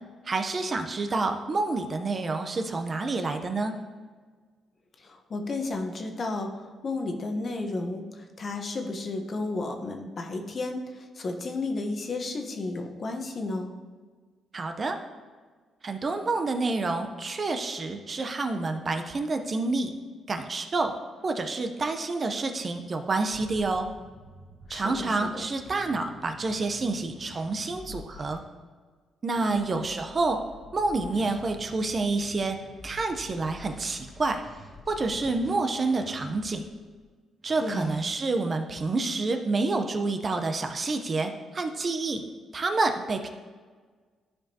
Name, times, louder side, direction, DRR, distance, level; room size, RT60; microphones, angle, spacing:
voice 1, 0.2-3.7 14.5-15.0 15.8-19.9 20.3-20.9 21.2-23.9 24.7-28.4 29.2-30.4 30.7-32.6 32.8-34.4 34.9-36.7 37.4-42.2 42.5-43.3, right 3 dB, 40° right, 6 dB, 0.7 m, -28 dB
voice 2, 5.0-13.7 24.7-25.4 29.4-29.7 37.6-37.9, left 2 dB, 45° left, 4 dB, 1.1 m, -33 dB
sound 1, 23.3-28.4 29.3-36.7 37.4-38.1, left 1 dB, 20° right, 2.0 m, -49 dB
12.0 x 5.0 x 2.9 m, 1.5 s
cardioid pair, 70°, 0 cm